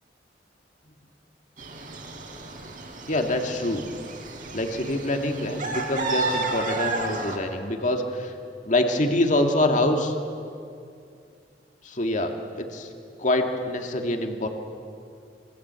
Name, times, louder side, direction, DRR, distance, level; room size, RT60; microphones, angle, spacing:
sound 1, 1.6-7.4, right 3 dB, 50° right, 4.1 m, -32 dB
voice 1, 3.1-3.9 4.5-8.3 8.6-10.1 11.8-12.9 13.2-14.5, left 1 dB, 45° left, 3 dB, 2.2 m, -25 dB
27.5 x 25.0 x 8.3 m, 2.4 s
head